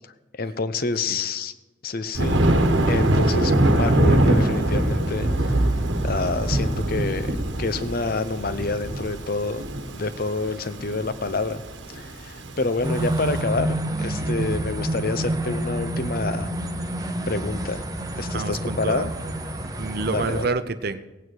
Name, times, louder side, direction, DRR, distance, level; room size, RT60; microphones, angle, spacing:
voice 1, 0.4-1.5 1.8-2.4 2.9-5.5 6.0-7.3 7.6-9.6 9.9-11.6 11.9-16.5 17.3-17.9 18.2-19.1 20.1-20.5, left 3 dB, 50° left, 12 dB, 0.7 m, -27 dB
Thunder, 2.1-13.3, right 1 dB, 65° right, 1.2 m, -22 dB
sound 1, 12.8-20.5, right 1 dB, 20° right, 0.9 m, -28 dB
voice 2, 18.3-19.1 19.8-21.0, right 3 dB, 50° right, 12 dB, 0.7 m, -28 dB
17.5 x 9.1 x 4.7 m, 1.1 s
head